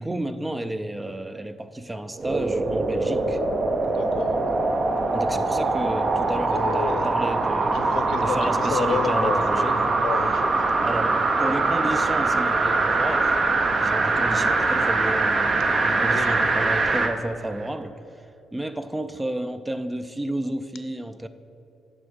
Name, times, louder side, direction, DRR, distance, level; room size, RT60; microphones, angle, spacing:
voice 1, 0.0-3.4 5.1-9.8 10.8-13.4 13.7-17.9 18.5-21.3, right 1 dB, 15° right, 11 dB, 0.4 m, -31 dB
sound 1, 2.2-17.1 17.6-17.7, right 3 dB, 40° right, 0.7 m, -23 dB
voice 2, 3.8-4.4 6.5-7.1 7.7-10.6 16.0-16.8, left 6 dB, 70° left, 10 dB, 0.6 m, -31 dB
9.2 x 6.2 x 5.1 m, 2.8 s
cardioid pair, 90°, 0 cm